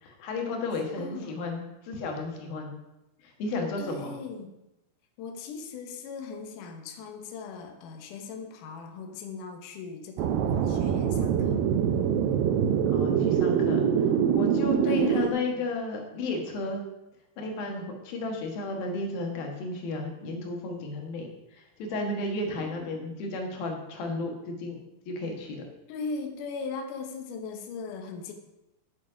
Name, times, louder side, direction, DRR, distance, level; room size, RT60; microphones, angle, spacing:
voice 1, 0.0-2.7 3.2-4.1 12.9-13.9 14.3-16.8 17.4-24.8 25.1-25.6, left 2 dB, 65° left, 2 dB, 2.9 m, -33 dB
voice 2, 1.0-1.4 3.8-4.6 5.2-11.6 14.9-15.4 22.6-22.8 25.9-28.3, left 4 dB, 85° left, 5 dB, 1.8 m, -39 dB
sound 1, 10.2-15.3, right 8 dB, 90° right, 2.0 m, -24 dB
9.2 x 7.2 x 5.0 m, 0.92 s
omnidirectional pair, 5.1 m